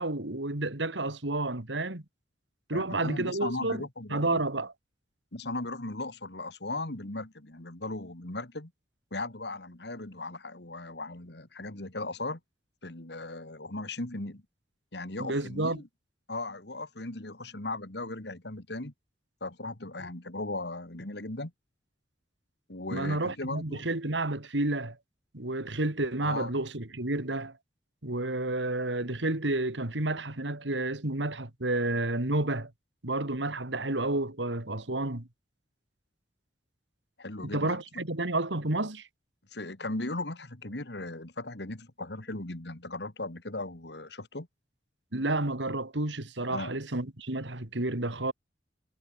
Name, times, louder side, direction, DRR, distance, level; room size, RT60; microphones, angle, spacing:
voice 1, 0.0-2.0 2.7-3.8 4.1-4.7 15.2-15.8 22.9-25.0 25.3-27.6 28.0-32.7 33.0-35.3 37.4-39.1 45.1-48.3, right 2 dB, 85° right, 2.6 m, -30 dB
voice 2, 2.7-4.4 5.3-8.7 9.1-12.4 12.8-14.4 14.9-15.9 16.3-18.9 19.4-21.5 22.7-23.8 26.2-26.5 37.2-37.8 39.5-44.5 46.5-46.7, left 2 dB, 70° left, 2.4 m, -37 dB
head